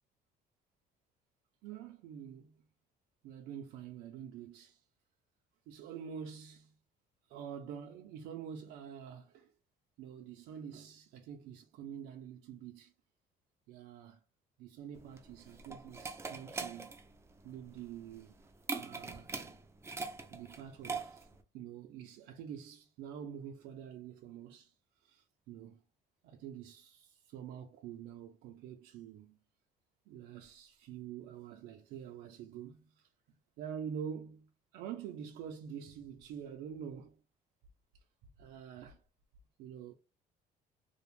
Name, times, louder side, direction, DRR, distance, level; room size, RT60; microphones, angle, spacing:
voice 1, 1.6-2.5 3.2-4.8 5.7-6.7 7.3-9.5 10.0-12.9 13.7-14.2 14.6-16.9 17.4-18.3 18.8-19.3 20.3-21.3 21.5-24.7 25.0-25.8 26.2-29.4 30.1-33.1 33.6-37.2 38.4-39.0 39.6-39.9, right 8 dB, 80° right, 0.4 m, -46 dB
sound 1, 15.0-21.4, right 4 dB, 15° right, 0.3 m, -42 dB
2.4 x 2.0 x 3.1 m
cardioid pair, 110°, 17 cm